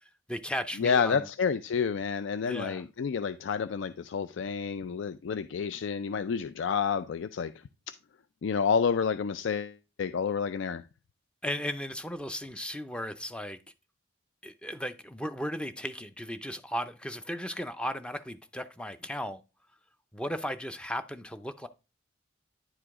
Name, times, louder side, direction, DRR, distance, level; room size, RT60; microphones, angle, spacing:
voice 1, 0.0-1.3 2.5-2.8 11.4-13.6 14.4-19.4 20.1-21.7, equal, 5° left, 0.5 m, -36 dB
voice 2, 0.8-7.5 8.4-10.8, left 6 dB, 75° left, 0.4 m, -29 dB
9.9 x 4.9 x 3.6 m
head